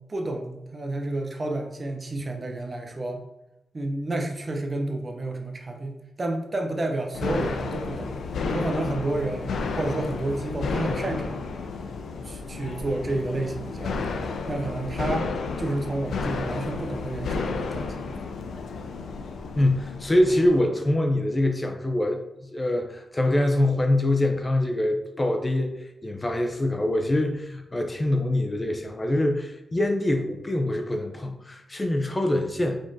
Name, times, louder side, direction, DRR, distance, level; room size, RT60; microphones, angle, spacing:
voice 1, 0.0-3.2 3.7-8.1 8.5-11.5 12.2-14.2 14.5-15.3 15.6-18.1, right 2 dB, 35° right, 3 dB, 0.7 m, -30 dB
sound 1, 7.1-20.6, left 4 dB, 85° left, 0.4 m, -32 dB
voice 2, 19.5-22.2 22.5-32.8, left 1 dB, 20° left, 4 dB, 0.5 m, -24 dB
5.1 x 3.6 x 2.7 m, 0.91 s
cardioid pair, 95°, 0 cm